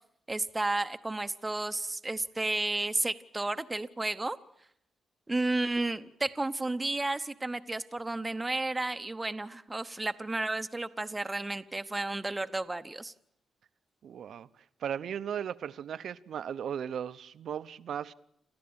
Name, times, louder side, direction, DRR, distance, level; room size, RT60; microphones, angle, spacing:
voice 1, 0.3-4.4 5.3-13.1, right 2 dB, 15° right, 0.9 m, -32 dB
voice 2, 14.0-14.5 14.8-18.1, right 8 dB, 65° right, 0.8 m, -36 dB
28.0 x 14.0 x 8.8 m
cardioid pair, 135°, 0 cm